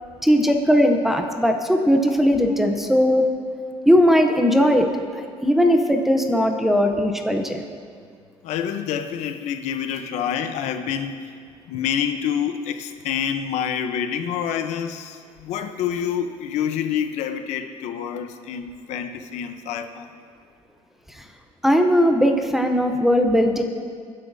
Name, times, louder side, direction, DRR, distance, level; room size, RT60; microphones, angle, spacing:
voice 1, 0.2-3.3 3.9-4.9 5.1-7.6 21.6-23.6, equal, ahead, 4 dB, 0.7 m, -18 dB
voice 2, 8.4-11.2 11.7-20.1, left 8 dB, 75° left, 7 dB, 0.8 m, -27 dB
23.5 x 9.9 x 2.7 m, 2.1 s
cardioid pair, 180°, 12 cm